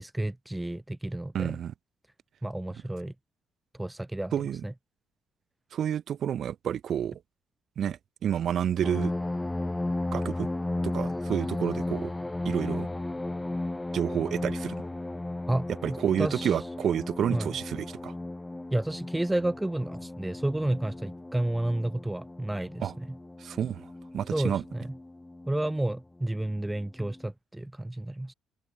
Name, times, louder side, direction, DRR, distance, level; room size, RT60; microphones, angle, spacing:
voice 1, 0.0-1.5 2.4-3.1 3.8-4.3 4.6-4.7 15.5-16.5 17.3-17.5 18.7-23.1 24.3-24.8 25.5-28.3, right 1 dB, 10° right, 0.3 m, -31 dB
voice 2, 1.3-1.7 4.3-4.6 5.7-7.2 7.8-9.1 10.1-10.5 10.8-12.1 12.4-12.9 13.9-14.8 15.8-18.1 22.8-22.9 23.4-23.9 24.1-24.6, right 9 dB, 65° right, 1.8 m, -29 dB
sound 1, 8.8-25.8 26.5-26.6 27.0-27.3, left 2 dB, 15° left, 0.8 m, -35 dB
cardioid pair, 90°, 0 cm